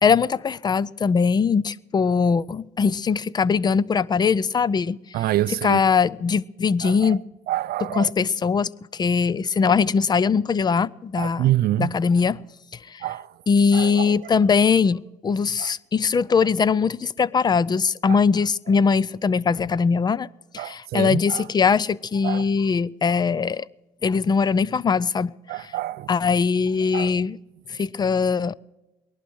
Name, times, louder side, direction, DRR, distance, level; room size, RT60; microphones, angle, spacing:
voice 1, 0.0-5.0 5.6-7.2 8.0-11.5 11.8-12.4 12.9-13.0 13.5-20.3 20.5-23.7 24.0-25.3 26.1-27.4 27.7-28.5, left 5 dB, 25° left, 0.4 m, -21 dB
voice 2, 5.1-5.8 6.8-7.2 7.5-8.1 11.2-11.9 13.0-13.4 13.7-14.3 15.6-15.7 18.1-18.2 18.7-18.8 20.6-21.5 22.2-22.5 25.5-26.1 26.9-27.1, right 14 dB, 65° right, 0.4 m, -27 dB
19.5 x 11.5 x 6.2 m
cardioid pair, 110°, 17 cm